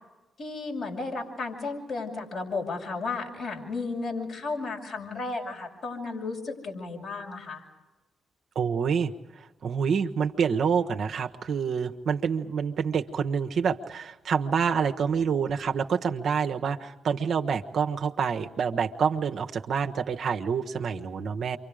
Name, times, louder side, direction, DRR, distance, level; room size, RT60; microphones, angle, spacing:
voice 1, 0.4-7.6, left 3 dB, 65° left, 0 dB, 7.3 m, -33 dB
voice 2, 8.5-9.1 9.4-21.6, right 6 dB, 65° right, 4 dB, 1.3 m, -27 dB
28.5 x 25.0 x 5.1 m, 1.1 s
hypercardioid pair, 45°, 0 cm